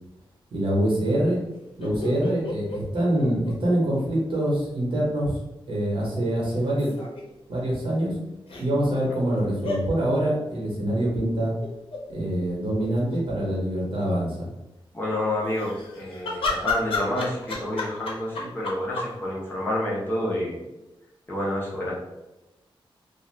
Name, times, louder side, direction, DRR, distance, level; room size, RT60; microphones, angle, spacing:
voice 1, 0.5-1.4 1.8-5.4 5.7-6.9 7.5-8.1 8.6-11.5 12.1-14.5, right 1 dB, 65° right, -4 dB, 1.1 m, -25 dB
sound 1, 1.8-4.0 4.3-4.4 6.5-7.2 8.5-8.6 9.6-9.8 11.6-12.0 12.5-12.6 12.8-13.5 15.4-19.1, left 3 dB, 75° left, 0.7 m, -31 dB
voice 2, 14.9-20.6 21.3-22.0, left 1 dB, 20° left, -6 dB, 0.8 m, -29 dB
2.6 x 2.4 x 3.3 m, 0.98 s
wide cardioid pair, 160°, 9 cm